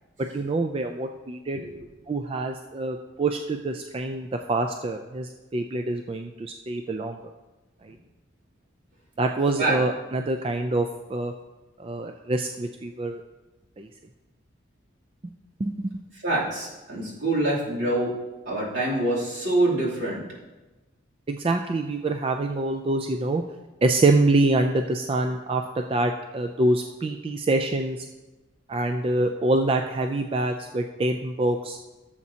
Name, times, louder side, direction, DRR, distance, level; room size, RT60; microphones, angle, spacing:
voice 1, 0.3-1.6 2.1-7.2 7.9-8.0 9.2-11.3 11.8-13.2 13.8-13.9 15.6-15.7 21.3-23.4 23.8-28.1 28.7-31.8, right 2 dB, 30° right, 6 dB, 0.3 m, -25 dB
voice 2, 16.2-18.1 18.5-20.2, right 2 dB, 70° right, -6 dB, 2.9 m, -25 dB
15.0 x 7.3 x 2.8 m, 1.1 s
head